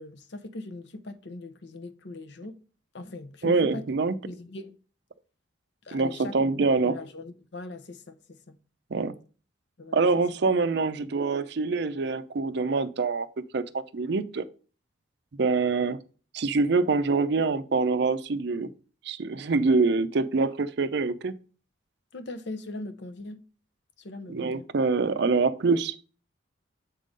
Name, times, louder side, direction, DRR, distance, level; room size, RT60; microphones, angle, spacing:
voice 1, 0.0-2.6 2.9-3.9 4.2-4.8 5.8-8.6 9.8-10.0 22.1-23.4 24.0-24.7, left 2 dB, 60° left, 0.7 m, -40 dB
voice 2, 3.4-4.2 5.9-7.0 8.9-9.2 9.9-13.3 13.5-14.4 15.4-16.0 16.3-18.7 19.0-21.4 24.3-25.9, right 4 dB, 55° right, 0.5 m, -25 dB
7.3 x 3.7 x 5.1 m
head